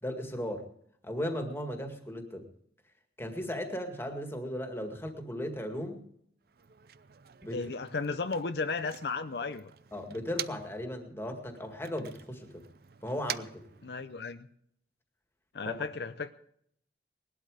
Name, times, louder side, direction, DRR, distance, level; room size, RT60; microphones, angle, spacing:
voice 1, 0.0-0.7 1.0-2.5 3.2-6.0 7.4-7.6 9.9-12.6 13.0-13.6 15.7-15.8, equal, 15° left, 5 dB, 2.0 m, -36 dB
Motor vehicle (road), 6.4-10.9 11.2-14.5, right 10 dB, 60° right, 0.6 m, -46 dB
voice 2, 7.5-9.7 13.8-14.5 15.5-16.3, left 4 dB, 70° left, 10 dB, 0.6 m, -34 dB
20.0 x 12.0 x 4.9 m, 0.70 s
head